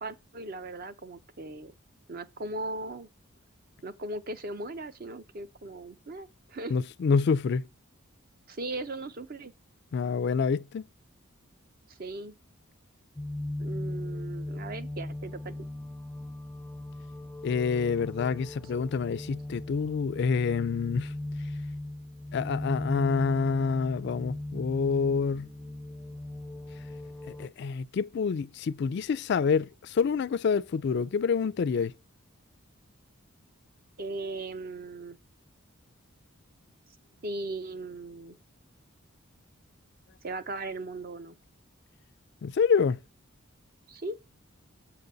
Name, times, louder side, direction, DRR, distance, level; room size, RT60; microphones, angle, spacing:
voice 1, 0.0-1.7 2.1-3.1 3.8-6.7 8.5-9.5 11.9-12.4 13.6-15.7 34.0-35.2 37.2-38.4 40.2-41.3 43.9-44.2, right 2 dB, 45° right, 0.6 m, -38 dB
voice 2, 6.7-7.7 9.9-10.8 17.4-21.1 22.3-25.5 27.3-31.9 42.4-43.0, left 5 dB, 55° left, 0.3 m, -27 dB
sound 1, 13.2-27.5, left 1 dB, 5° left, 0.5 m, -38 dB
7.5 x 3.9 x 6.7 m
head